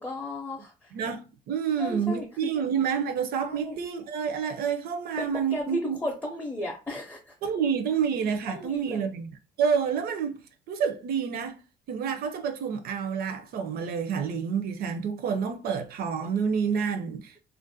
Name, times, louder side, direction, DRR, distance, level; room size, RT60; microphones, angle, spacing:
voice 1, 0.0-0.9 1.8-2.5 3.5-3.7 5.2-7.3 8.5-9.1, left 1 dB, 10° left, 0.5 m, -34 dB
voice 2, 0.9-6.0 7.4-9.3 9.6-11.6 11.9-17.3, right 7 dB, 65° right, 0.5 m, -28 dB
2.5 x 2.1 x 2.6 m
cardioid pair, 110°, 17 cm